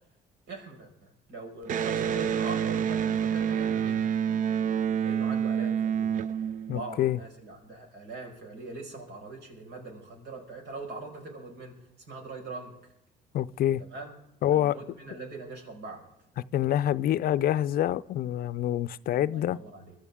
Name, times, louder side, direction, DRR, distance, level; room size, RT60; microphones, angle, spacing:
voice 1, 0.5-4.0 5.0-6.2 6.7-11.8 12.1-12.7 13.9-14.1 14.5-16.0 19.2-20.0, right 3 dB, 75° right, 5.4 m, -42 dB
Electric guitar, 1.7-7.1, right 8 dB, 50° right, 0.5 m, -28 dB
voice 2, 6.7-7.2 13.3-13.8 14.4-14.8 16.5-19.6, left 12 dB, 60° left, 0.5 m, -26 dB
23.5 x 13.0 x 3.7 m
cardioid pair, 110°, 17 cm